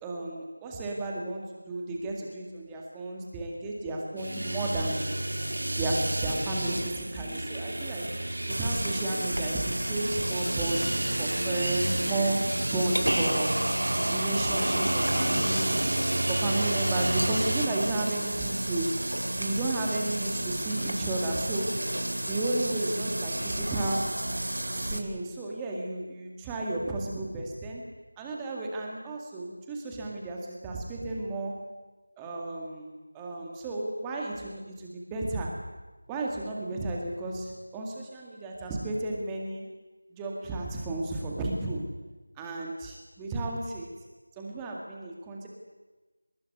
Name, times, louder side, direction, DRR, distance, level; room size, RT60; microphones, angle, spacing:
voice 1, 0.0-5.1 5.8-8.1 8.5-10.9 11.2-13.7 14.1-16.0 16.3-21.8 22.3-24.2 24.7-27.8 28.2-31.6 32.2-35.5 36.1-39.6 40.1-41.9 42.4-43.9 44.4-45.5, right 2 dB, 5° right, -1 dB, 2.0 m, -33 dB
sound 1, 4.2-17.7, right 1 dB, 60° right, 3.5 m, -32 dB
sound 2, 8.5-25.0, right 1 dB, 80° right, 4.0 m, -31 dB
28.0 x 19.5 x 9.5 m, 1.2 s
figure-of-eight pair, 175°, 0 cm